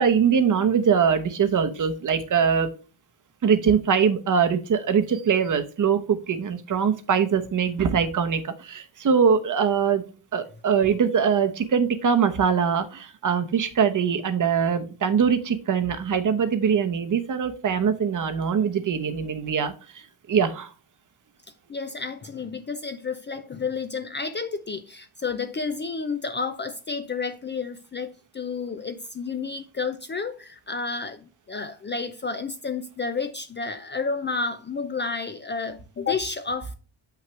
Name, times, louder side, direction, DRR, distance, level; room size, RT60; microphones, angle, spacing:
voice 1, 0.0-2.7 3.4-10.0 10.3-20.7, right 7 dB, 40° right, 1.0 m, -22 dB
voice 2, 21.7-36.7, left 4 dB, 25° left, 0.5 m, -31 dB
7.4 x 5.9 x 3.2 m
cardioid pair, 145°, 48 cm